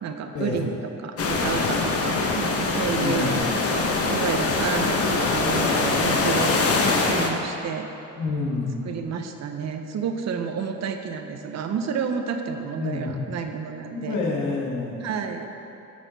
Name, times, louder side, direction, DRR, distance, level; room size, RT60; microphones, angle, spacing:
voice 1, 0.0-6.5 7.0-7.9 8.9-14.2 15.0-15.5, right 6 dB, 60° right, 5 dB, 0.8 m, -30 dB
sound 1, 1.2-7.3, left 3 dB, 50° left, 0.9 m, -23 dB
voice 2, 3.0-3.4 8.1-8.8 12.8-13.2 13.9-15.0, left 3 dB, 75° left, -2 dB, 1.6 m, -28 dB
9.3 x 6.5 x 4.0 m, 2.8 s
cardioid pair, 90°, 30 cm